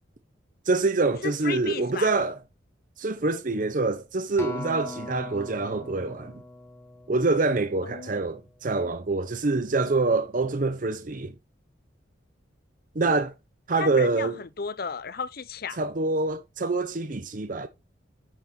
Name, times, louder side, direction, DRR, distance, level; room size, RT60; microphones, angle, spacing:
voice 1, 0.7-2.4 3.0-6.4 7.1-11.3 12.9-13.3 13.7-14.4 15.8-17.7, right 3 dB, 45° right, 0.7 m, -25 dB
voice 2, 1.2-2.1 7.8-8.3 13.0-13.1 13.8-15.8, left 5 dB, 50° left, 0.7 m, -34 dB
Acoustic guitar, 4.4-8.8 9.4-9.6, left 2 dB, 15° left, 1.4 m, -41 dB
9.3 x 5.9 x 4.3 m
head